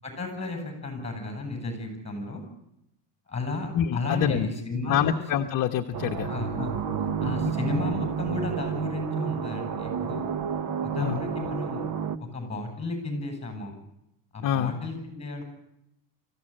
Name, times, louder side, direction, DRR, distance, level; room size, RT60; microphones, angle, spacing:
voice 1, 0.0-2.4 3.3-5.2 6.3-6.7 7.2-10.3 10.8-11.8 12.3-13.7 14.3-15.4, left 3 dB, 15° left, 6 dB, 7.9 m, -33 dB
voice 2, 3.7-4.5 4.9-6.3 11.0-11.2 14.4-14.7, left 9 dB, 45° left, 5 dB, 1.1 m, -26 dB
sound 1, 5.9-12.2, right 7 dB, 40° right, 1.2 m, -30 dB
25.0 x 15.0 x 8.8 m, 0.84 s
cardioid pair, 150°, 46 cm